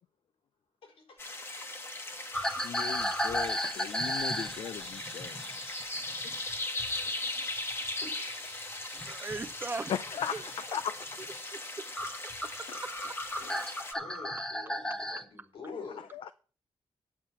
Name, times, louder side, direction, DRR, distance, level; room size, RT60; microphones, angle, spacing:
voice 1, 0.8-1.2 8.0-8.1 13.4-13.6 14.0-16.1, left 4 dB, 85° left, 3.8 m, -46 dB
sound 1, 1.2-13.9, left 2 dB, 25° left, 1.2 m, -39 dB
sound 2, 2.3-7.1 7.4-9.5 10.1-10.4 10.9-11.0 11.6-11.7 11.9-15.2, equal, 5° left, 1.0 m, -35 dB
voice 2, 2.6-5.4 9.9-10.9 12.7-12.8 13.4-13.5 15.7-16.3, left 8 dB, 65° left, 0.5 m, -37 dB
voice 3, 8.9-9.9 10.2-10.5 11.5-11.9 12.4-13.2 15.4-15.5, right 3 dB, 20° right, 0.6 m, -40 dB
9.5 x 7.3 x 5.8 m
wide cardioid pair, 165°, 10 cm